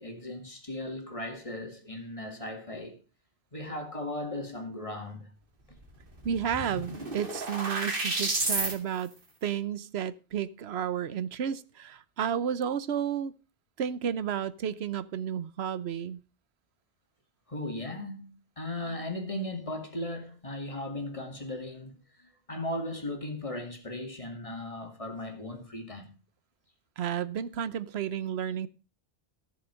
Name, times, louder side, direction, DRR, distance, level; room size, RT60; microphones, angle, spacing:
voice 1, 0.0-3.0 3.5-5.3 17.5-26.1, left 1 dB, 35° left, 2.4 m, -37 dB
sound 1, 5.9-6.0 6.2-8.7, right 2 dB, 60° right, 2.4 m, -31 dB
voice 2, 6.2-9.1 9.4-13.3 13.8-16.2 27.0-28.7, right 8 dB, 90° right, 1.0 m, -32 dB
14.0 x 7.1 x 6.2 m
omnidirectional pair, 1.0 m